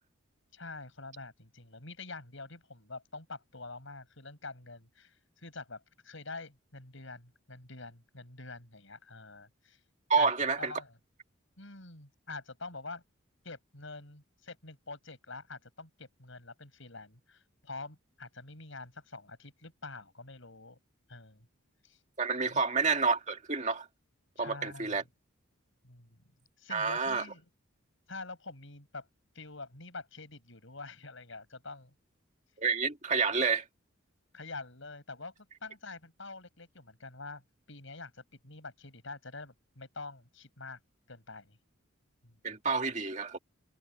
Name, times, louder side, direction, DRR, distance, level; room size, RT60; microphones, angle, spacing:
voice 1, 0.5-9.8 10.2-10.3 10.6-10.9 11.6-13.0 13.4-20.8 21.1-21.5 21.8-22.0 22.4-22.6 24.4-25.0 25.8-26.2 26.6-27.5 28.1-29.1 29.3-31.9 34.3-37.4 37.7-40.8 41.1-41.6 42.2-42.4, left 3 dB, 65° left, 5.7 m, -46 dB
voice 2, 10.1-10.7 22.2-23.9 24.4-25.0 26.7-27.2 32.6-33.6 42.4-43.4, right 5 dB, 35° right, 2.2 m, -29 dB
head